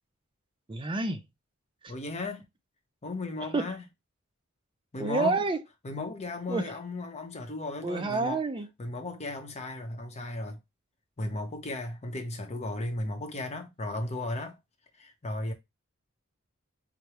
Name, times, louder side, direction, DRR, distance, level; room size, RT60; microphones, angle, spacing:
voice 1, 0.7-1.2 3.5-3.7 5.0-5.6 6.5-6.6 7.8-8.7, right 3 dB, 25° right, 0.5 m, -28 dB
voice 2, 1.9-2.4 3.0-3.8 4.9-5.4 5.8-8.4 8.8-10.6 11.2-14.6 15.0-15.5, left 2 dB, 30° left, 0.8 m, -35 dB
4.9 x 2.1 x 2.9 m
head